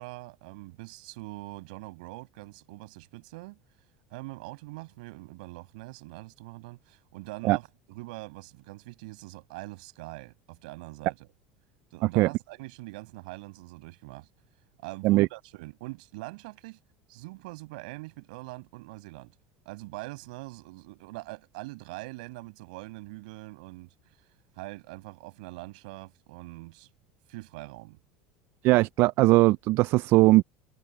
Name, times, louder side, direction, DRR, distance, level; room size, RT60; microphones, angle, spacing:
voice 1, 0.0-3.6 4.1-11.3 11.9-14.3 14.8-16.8 17.1-19.3 19.6-24.2 24.6-26.9 27.3-28.0, right 24 dB, 80° right, 6.0 m, -43 dB
voice 2, 28.6-30.4, right 19 dB, 60° right, 0.4 m, -20 dB
supercardioid pair, 100°, 4 cm